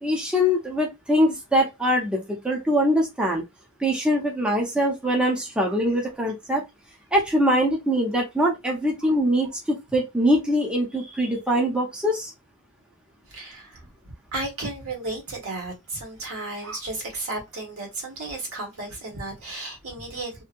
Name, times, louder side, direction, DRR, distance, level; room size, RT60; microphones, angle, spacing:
voice 1, 0.0-3.4 3.8-6.6 7.1-12.3, equal, 5° right, 0.5 m, -23 dB
voice 2, 13.3-20.4, right 2 dB, 70° right, 1.3 m, -34 dB
2.7 x 2.6 x 2.5 m
head